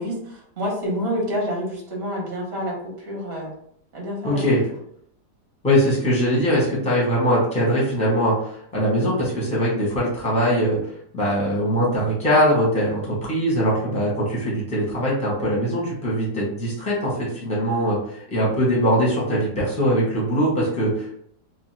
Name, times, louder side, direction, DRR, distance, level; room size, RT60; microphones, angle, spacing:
voice 1, 0.0-3.5 3.9-4.4, equal, 45° right, -2 dB, 0.9 m, -28 dB
voice 2, 4.2-4.6 5.6-8.3 8.7-10.8 11.1-18.0 18.3-21.1, equal, 5° left, -5 dB, 0.7 m, -21 dB
2.8 x 2.1 x 3.1 m, 0.67 s
omnidirectional pair, 1.8 m